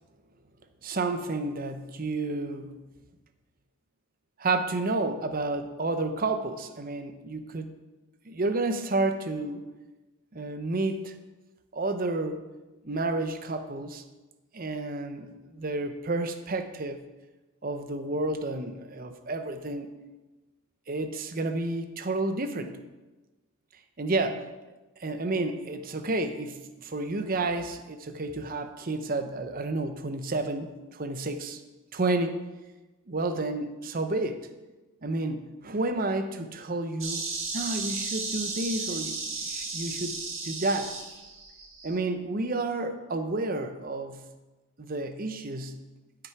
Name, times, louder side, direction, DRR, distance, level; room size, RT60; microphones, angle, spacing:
voice 1, 0.8-2.8 4.4-7.7 8.2-9.7 10.3-11.1 11.7-12.5 12.8-14.0 14.5-17.0 17.6-19.9 20.9-22.8 24.0-24.5 25.0-31.6 31.9-32.4 33.1-34.4 35.0-37.3 37.5-39.2 39.4-40.2 40.4-40.9 41.8-44.3 44.8-45.8, right 2 dB, 40° right, 8 dB, 0.7 m, -30 dB
Insect, 37.0-42.0, right 4 dB, 70° right, 1.7 m, -34 dB
12.5 x 6.1 x 4.7 m, 1.1 s
head